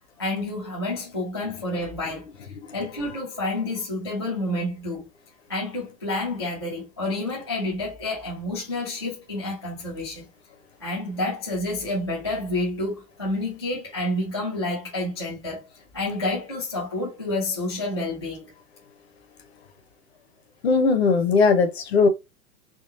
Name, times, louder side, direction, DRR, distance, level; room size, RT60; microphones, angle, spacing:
voice 1, 0.2-2.5 2.7-5.1 5.5-10.2 10.8-15.7 15.9-18.5, left 2 dB, 20° left, 0.4 m, -29 dB
voice 2, 20.6-22.1, left 4 dB, 40° left, 0.8 m, -19 dB
3.7 x 3.6 x 2.6 m
hypercardioid pair, 175°, 48 cm